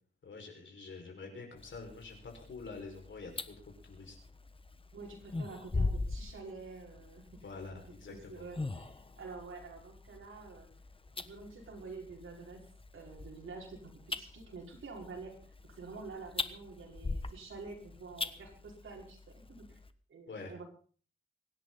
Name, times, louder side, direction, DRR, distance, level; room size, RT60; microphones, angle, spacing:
voice 1, 0.2-3.6 3.8-4.2 7.4-8.5 20.3-20.5, left 4 dB, 65° left, 2 dB, 5.6 m, -46 dB
sound 1, 1.6-19.9, left 3 dB, 25° left, 1.2 m, -42 dB
voice 2, 4.9-7.4 7.7-7.8 8.1-10.7 11.1-12.7 12.9-15.4 15.8-19.8 20.1-20.6, right 4 dB, 80° right, -1 dB, 5.3 m, -48 dB
25.0 x 10.5 x 4.2 m, 0.42 s
wide cardioid pair, 85°, 21 cm